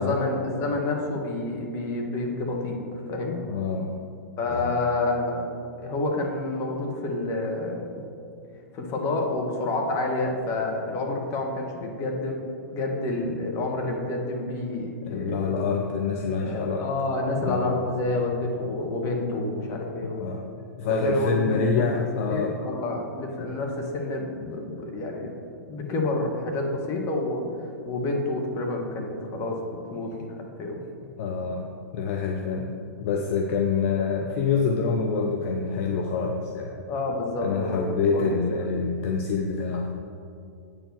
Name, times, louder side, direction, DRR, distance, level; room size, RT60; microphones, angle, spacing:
voice 1, 0.0-3.4 4.4-5.5 5.8-8.0 8.7-12.4 12.7-15.6 16.4-20.2 21.0-21.8 22.3-25.3 25.7-29.6 29.9-30.8 36.9-38.4, left 2 dB, 35° left, 1 dB, 1.6 m, -29 dB
voice 2, 3.4-4.0 4.5-4.7 15.0-16.9 17.4-17.7 20.2-20.5 20.8-22.6 23.4-23.5 31.2-32.7 33.0-36.8 37.4-39.9, left 5 dB, 55° left, 2 dB, 0.8 m, -26 dB
8.7 x 4.8 x 6.2 m, 2.6 s
hypercardioid pair, 110°, 9 cm